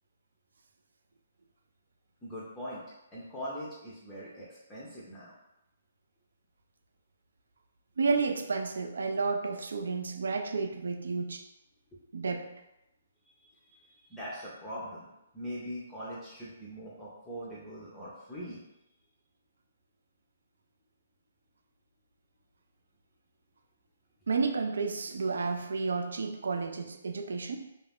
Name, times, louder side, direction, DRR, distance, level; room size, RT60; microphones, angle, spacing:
voice 1, 2.2-2.8 3.1-5.3 8.1-8.2 11.9-12.0 13.5-15.1 15.3-18.6, equal, 10° left, -7 dB, 0.5 m, -42 dB
voice 2, 8.0-11.5 12.1-12.5 24.3-27.6, right 4 dB, 80° right, 6 dB, 0.3 m, -31 dB
2.4 x 2.3 x 3.4 m, 0.89 s
hypercardioid pair, 165°, 0 cm